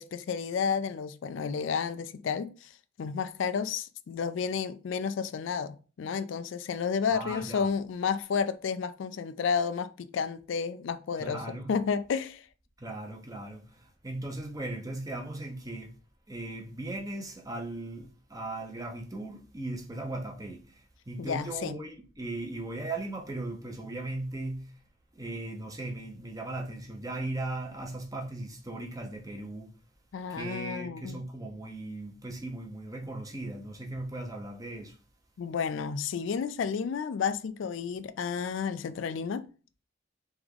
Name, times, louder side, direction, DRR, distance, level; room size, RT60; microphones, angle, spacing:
voice 1, 0.0-2.7 3.0-12.5 21.2-21.8 30.1-31.2 35.4-39.5, left 6 dB, 65° left, 0.3 m, -31 dB
voice 2, 7.1-7.8 11.2-11.7 12.8-16.0 16.3-24.7 25.1-29.7 30.3-35.0, right 2 dB, 15° right, 0.7 m, -38 dB
3.5 x 3.5 x 3.5 m
head